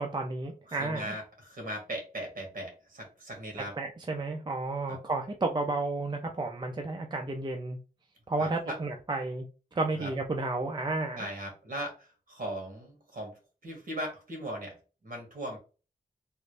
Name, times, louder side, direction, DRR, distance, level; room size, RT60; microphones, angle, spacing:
voice 1, 0.0-1.2 3.8-7.8 8.3-9.5 9.7-11.3, right 2 dB, 30° right, 3 dB, 0.5 m, -32 dB
voice 2, 0.7-3.7 4.9-5.0 8.4-8.7 10.0-10.1 11.1-15.6, equal, 55° right, 2 dB, 1.6 m, -39 dB
3.1 x 2.5 x 3.2 m, 0.34 s
wide cardioid pair, 120°, 16 cm